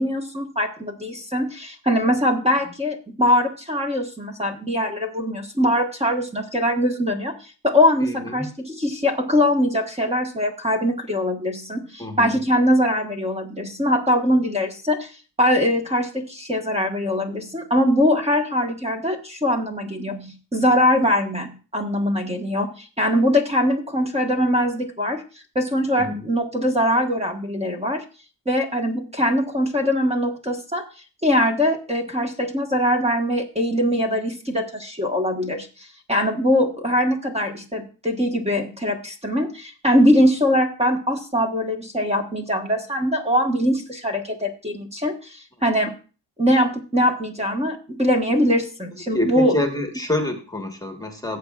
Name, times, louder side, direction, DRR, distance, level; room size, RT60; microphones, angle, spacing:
voice 1, 0.0-15.1 15.4-25.2 25.5-28.0 28.5-30.8 31.2-45.9 46.4-49.5, equal, 15° right, 2 dB, 1.4 m, -22 dB
voice 2, 8.0-8.5 12.0-12.4 26.0-26.3 49.1-51.4, left 1 dB, 10° left, 4 dB, 1.4 m, -27 dB
17.5 x 8.2 x 2.4 m, 0.35 s
cardioid pair, 135°, 46 cm